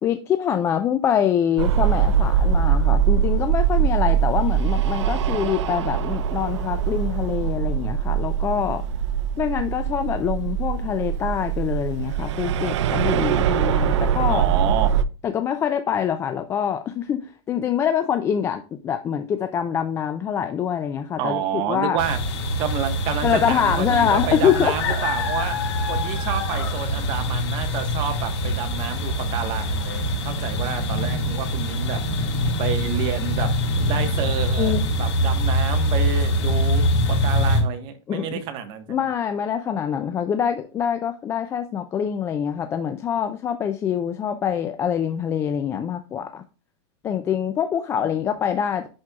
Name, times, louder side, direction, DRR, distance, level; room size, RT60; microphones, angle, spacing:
voice 1, 0.0-8.8 9.4-14.4 15.2-22.0 23.2-24.8 34.6-34.9 38.1-38.4 38.9-46.4 47.0-48.9, left 8 dB, 15° left, 8 dB, 0.4 m, -25 dB
sound 1, 1.6-15.0, right 8 dB, 80° right, 0.6 m, -22 dB
voice 2, 14.3-14.9 21.2-22.2 22.6-25.6 25.9-32.3 32.6-33.5 33.8-39.0 48.0-48.1, right 9 dB, 35° right, 7 dB, 1.3 m, -29 dB
sound 2, 22.0-37.6, equal, 75° left, 3.4 m, -24 dB
11.0 x 4.4 x 2.3 m, 0.33 s
supercardioid pair, 150°, 15 cm